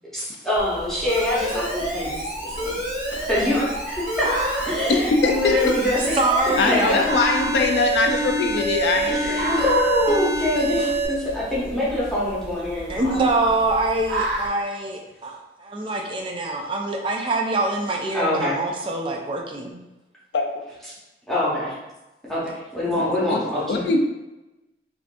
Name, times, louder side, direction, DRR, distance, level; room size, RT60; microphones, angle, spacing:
voice 1, 0.1-2.8 3.3-4.3 4.6-6.1 6.7-7.0 9.1-13.2 18.1-18.6 21.3-21.7 22.3-22.4 22.7-23.8, left 1 dB, ahead, -9 dB, 0.8 m, -24 dB
sound 1, 0.5-14.5, right 1 dB, 75° right, 0.6 m, -34 dB
Alarm, 1.1-11.1, right 1 dB, 45° right, 0.9 m, -27 dB
voice 2, 4.9-5.6 6.6-9.5 20.3-20.6 23.0-23.4 23.7-24.0, left 3 dB, 80° left, 3 dB, 0.4 m, -22 dB
voice 3, 6.2-7.0 12.9-19.8, right 2 dB, 30° right, 2 dB, 0.4 m, -24 dB
3.5 x 2.5 x 2.4 m, 1.0 s
head